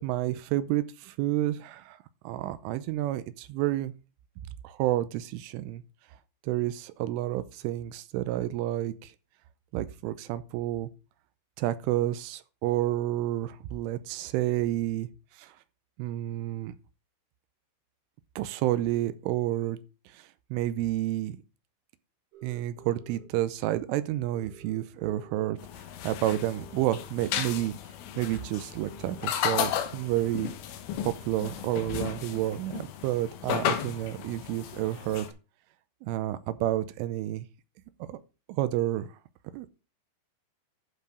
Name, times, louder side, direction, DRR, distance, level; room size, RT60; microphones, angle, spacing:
voice 1, 0.0-2.0 2.2-3.9 4.6-5.8 6.4-9.1 9.7-10.9 11.6-15.1 15.4-15.5 16.0-16.7 18.4-19.8 20.1-20.2 20.5-21.4 22.4-25.6 26.0-27.7 28.2-30.5 31.0-35.3 36.0-37.5 38.1-38.2 38.5-39.1 39.5-39.7, right 14 dB, 85° right, 3.2 m, -30 dB
sound 1, 22.3-23.2 24.3-25.5 26.6-27.7 28.8-29.7, right 6 dB, 65° right, 3.9 m, -52 dB
sound 2, 25.6-35.3, left 10 dB, 85° left, 3.6 m, -34 dB
11.5 x 4.7 x 5.0 m
omnidirectional pair, 5.5 m